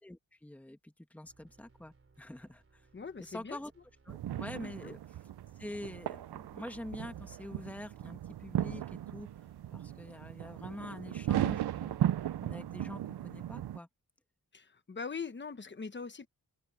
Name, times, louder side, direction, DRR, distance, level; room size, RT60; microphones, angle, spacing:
voice 1, 0.0-2.9 3.2-3.7 4.0-5.2 5.6-9.3 9.7-12.1 12.4-13.9, left 1 dB, 5° left, 1.4 m, -46 dB
sound 1, 1.2-12.1, right 4 dB, 35° right, 3.3 m, -65 dB
voice 2, 2.9-3.6 4.6-4.9 14.5-16.3, left 5 dB, 30° left, 1.1 m, -42 dB
sound 2, 4.1-13.8, right 11 dB, 85° right, 0.6 m, -36 dB
wide cardioid pair, 170°, 38 cm